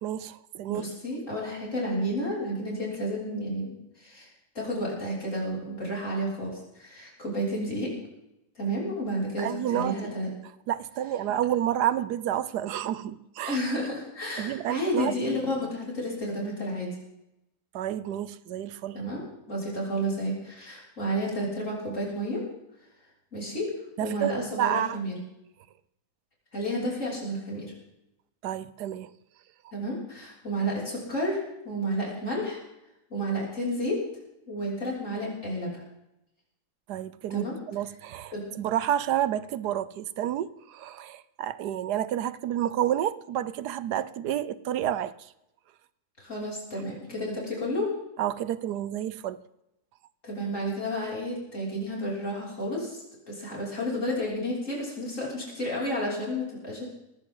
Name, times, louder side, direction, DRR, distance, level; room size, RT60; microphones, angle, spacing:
voice 1, 0.0-0.8 9.4-10.1 10.7-13.6 14.4-15.4 17.7-19.0 24.0-25.0 28.4-29.1 36.9-45.1 48.2-49.4, right 11 dB, 90° right, 1.3 m, -30 dB
voice 2, 0.7-4.3 4.5-7.9 8.5-10.3 13.4-16.9 18.9-22.5 23.3-23.7 24.0-25.1 26.5-27.7 29.7-32.6 33.1-34.0 34.5-35.8 37.3-37.6 38.3-38.5 46.2-47.9 50.2-56.9, equal, 50° left, 6.6 m, -31 dB
19.5 x 15.5 x 3.9 m
omnidirectional pair, 1.7 m